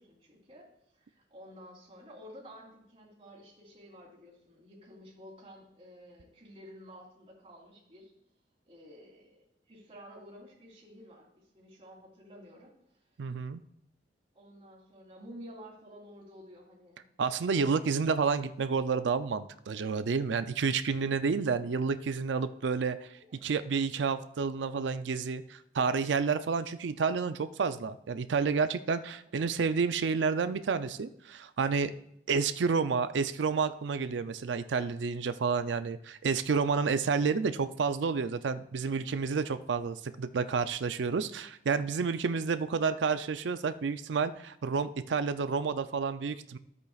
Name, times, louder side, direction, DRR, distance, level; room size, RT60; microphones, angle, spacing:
voice 1, 0.0-8.1 8.6-9.4 9.7-11.3 11.5-13.3 14.3-17.0 23.1-23.4, equal, 30° right, -9 dB, 3.3 m, -52 dB
voice 2, 13.2-13.6 17.2-23.0 23.4-31.9 32.3-46.6, right 5 dB, 80° right, 12 dB, 0.4 m, -30 dB
13.0 x 8.2 x 2.4 m, 0.76 s
head